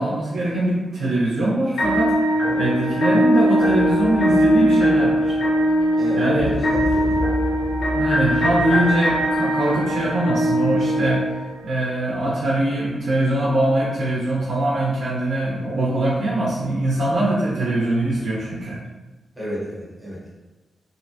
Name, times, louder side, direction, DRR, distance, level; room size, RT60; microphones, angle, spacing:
voice 1, 0.0-2.1 2.5-5.4 6.1-6.5 7.1-7.2 7.9-11.2 11.6-18.8, right 1 dB, 80° right, -6 dB, 0.5 m, -22 dB
sound 1, 1.8-11.8, equal, 65° left, 0.7 m, -21 dB
sound 2, 3.4-8.8, left 1 dB, 15° left, 0.3 m, -32 dB
voice 2, 6.0-7.3 15.5-15.7 19.4-20.3, equal, 10° right, -7 dB, 0.7 m, -31 dB
2.6 x 2.1 x 2.7 m, 1.1 s
wide cardioid pair, 160°, 0 cm